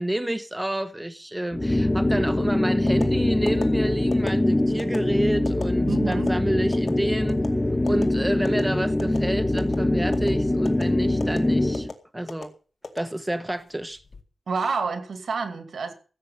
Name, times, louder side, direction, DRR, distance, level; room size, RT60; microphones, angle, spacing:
voice 1, 0.0-7.4 7.8-11.9 12.1-12.5 12.9-14.0, right 1 dB, 10° right, 1.1 m, -29 dB
sound 1, 1.5-11.9, left 1 dB, 20° left, 1.1 m, -23 dB
sound 2, 2.9-3.1 3.5-3.7 4.1-4.3 4.8-5.0 5.5-5.6 6.1-6.3 6.7-6.9 7.3-7.5 7.9-8.0 8.5-8.6 9.0-9.3 9.6-9.8 10.1-10.3 10.7-10.8 11.2-11.4 11.7-11.9 12.3-12.5 12.8-13.5 13.9-14.2, left 4 dB, 60° left, 2.1 m, -33 dB
voice 2, 5.9-6.4 14.5-15.9, right 4 dB, 90° right, 2.5 m, -28 dB
16.0 x 7.8 x 6.9 m
wide cardioid pair, 95°, 0 cm